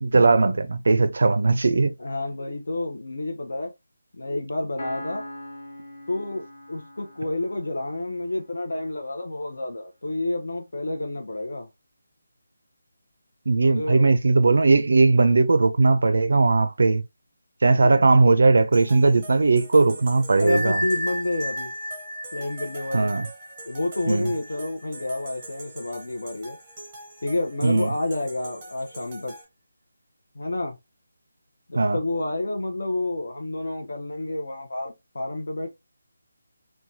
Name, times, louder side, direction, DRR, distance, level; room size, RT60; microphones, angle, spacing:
voice 1, 0.0-1.9 13.5-17.0 17.6-20.8 22.9-23.3 24.1-24.3 27.6-27.9 31.7-32.0, right 3 dB, 55° right, 0.4 m, -19 dB
voice 2, 2.0-3.7 4.1-5.2 6.1-11.7 13.6-14.2 17.8-18.0 20.4-21.7 22.3-23.1 23.7-26.6 27.2-29.3 30.3-30.8 31.7-35.7, left 2 dB, 65° left, 0.6 m, -29 dB
Piano, 4.8-8.4, left 1 dB, 35° left, 0.9 m, -41 dB
sound 1, 18.7-29.4, right 1 dB, 15° right, 0.6 m, -44 dB
Bell, 20.5-25.9, equal, 15° left, 1.1 m, -33 dB
3.1 x 2.2 x 2.6 m
figure-of-eight pair, 180°, 0 cm